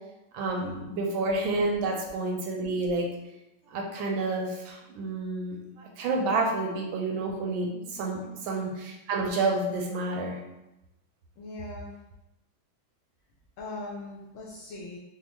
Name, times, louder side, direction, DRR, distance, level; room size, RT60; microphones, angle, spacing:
voice 1, 0.3-3.1 3.7-10.4, right 2 dB, 75° right, 0 dB, 1.3 m, -29 dB
voice 2, 11.4-11.9 13.6-15.0, left 2 dB, 75° left, -4 dB, 1.3 m, -40 dB
4.3 x 2.0 x 3.0 m, 0.93 s
omnidirectional pair, 2.3 m